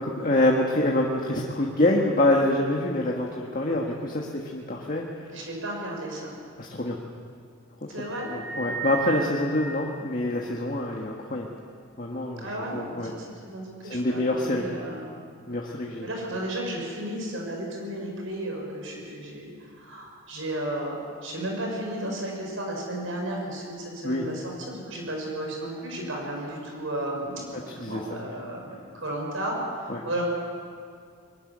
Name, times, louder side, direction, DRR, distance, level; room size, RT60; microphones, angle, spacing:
voice 1, 0.0-5.3 6.6-7.0 8.3-11.5 12.0-13.1 13.8-14.7 15.5-16.1 24.0-24.2 27.8-28.3 29.9-30.0, left 1 dB, 40° left, -1 dB, 1.5 m, -26 dB
voice 2, 5.3-6.3 7.9-8.3 12.4-15.1 16.0-19.5 19.8-29.6 30.0-30.2, right 1 dB, 70° right, 0 dB, 6.1 m, -33 dB
sound 1, 8.0-10.7, right 5 dB, 10° right, 2.6 m, -36 dB
22.0 x 13.0 x 9.8 m, 2.2 s
head